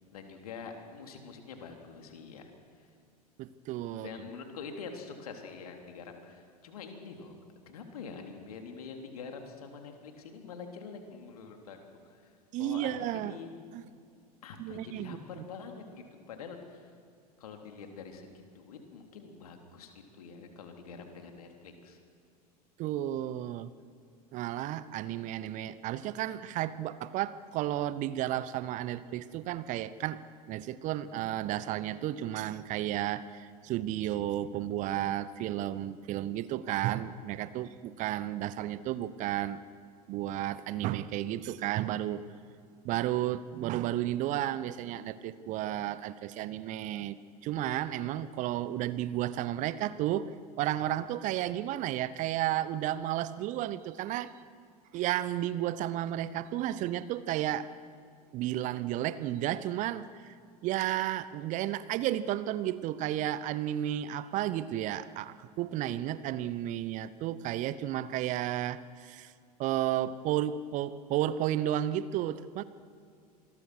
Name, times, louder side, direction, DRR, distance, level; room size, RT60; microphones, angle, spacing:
voice 1, 0.1-2.5 2.7-2.9 3.9-7.4 7.6-11.8 12.0-13.5 14.4-16.9 17.4-22.0, left 5 dB, 65° left, 4 dB, 3.4 m, -45 dB
voice 2, 3.4-4.1 12.5-13.4 13.7-13.8 14.6-15.4 22.8-23.7 24.3-39.6 40.1-42.2 42.8-47.2 47.4-50.3 50.6-54.3 54.9-57.7 58.3-60.3 60.6-69.3 69.6-72.6, right 13 dB, 40° right, 16 dB, 0.9 m, -32 dB
27.0 x 21.0 x 6.3 m, 2.3 s
figure-of-eight pair, 85°, 20 cm